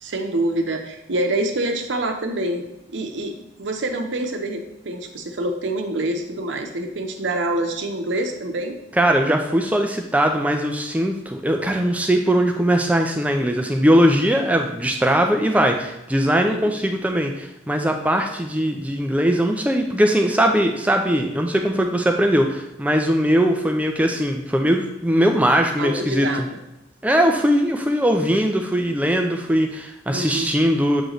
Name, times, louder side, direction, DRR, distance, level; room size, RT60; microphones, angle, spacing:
voice 1, 0.0-2.6 2.9-8.8 16.5-16.7 25.8-26.4 30.1-30.5, right 1 dB, 85° right, 4 dB, 0.8 m, -26 dB
voice 2, 9.0-26.3 27.0-31.0, equal, 10° right, 3 dB, 0.4 m, -20 dB
7.9 x 3.1 x 3.9 m, 0.93 s
head